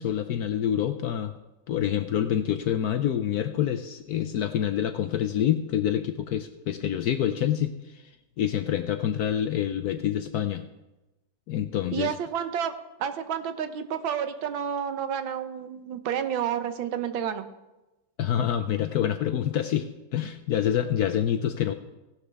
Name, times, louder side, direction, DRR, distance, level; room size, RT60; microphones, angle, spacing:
voice 1, 0.0-1.3 1.7-8.0 8.4-10.6 11.5-12.1 18.2-21.7, left 10 dB, 70° left, 9 dB, 0.9 m, -27 dB
voice 2, 11.9-12.7 13.0-17.5, right 8 dB, 85° right, 9 dB, 1.7 m, -30 dB
16.5 x 11.5 x 3.4 m, 1.0 s
omnidirectional pair, 2.1 m